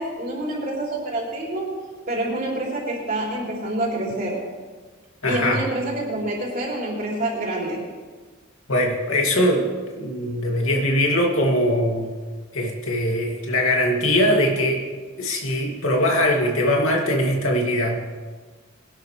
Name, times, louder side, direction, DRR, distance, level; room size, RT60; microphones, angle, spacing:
voice 1, 0.0-1.7 2.1-4.4 5.3-7.8, right 1 dB, 45° right, -4 dB, 3.8 m, -27 dB
voice 2, 5.2-5.6 8.7-9.7 10.0-12.1 12.5-14.9 15.2-18.0, left 1 dB, 85° left, 0 dB, 2.5 m, -21 dB
21.5 x 11.5 x 3.3 m, 1.4 s
head